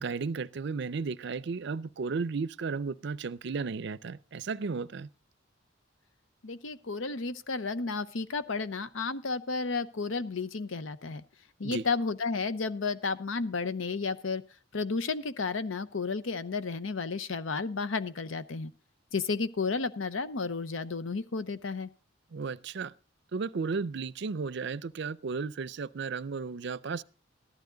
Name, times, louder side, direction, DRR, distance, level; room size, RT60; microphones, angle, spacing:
voice 1, 0.0-5.1 11.6-11.8 22.3-22.9 23.3-27.0, right 4 dB, 65° right, 0.5 m, -34 dB
voice 2, 6.4-11.2 11.6-14.4 14.7-18.7 19.1-21.9, left 4 dB, 90° left, 0.8 m, -32 dB
14.0 x 12.0 x 3.9 m
head